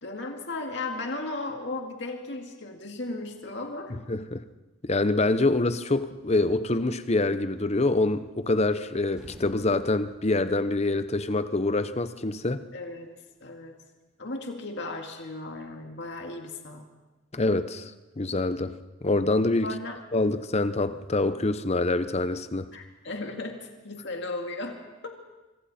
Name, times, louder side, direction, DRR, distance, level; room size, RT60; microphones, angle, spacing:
voice 1, 0.0-4.0 12.7-13.1 13.4-13.8 14.2-16.9 19.6-20.0 22.7-25.1, left 2 dB, 60° left, 2.1 m, -36 dB
voice 2, 3.9-4.4 4.8-12.7 17.3-17.9 18.2-19.7 20.1-22.7, left 2 dB, 35° left, 0.8 m, -26 dB
sound 1, 8.3-8.8 9.1-11.2, equal, 5° right, 7.5 m, -51 dB
25.0 x 24.5 x 4.3 m
head